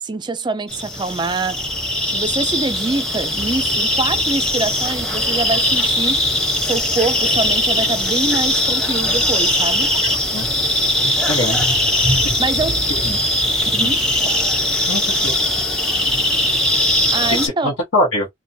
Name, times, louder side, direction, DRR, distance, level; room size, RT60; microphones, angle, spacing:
voice 1, 0.0-1.6 2.1-6.2 6.6-9.9 12.4-12.8 13.1-13.2 13.7-14.1 17.1-17.8, right 3 dB, 20° right, 0.3 m, -24 dB
sound 1, 0.7-17.5, left 1 dB, 5° left, 0.7 m, -19 dB
voice 2, 11.0-11.6 12.9-13.1 13.8-13.9 14.9-15.4 17.4-18.3, left 1 dB, 75° left, 1.0 m, -22 dB
3.0 x 2.1 x 2.6 m
head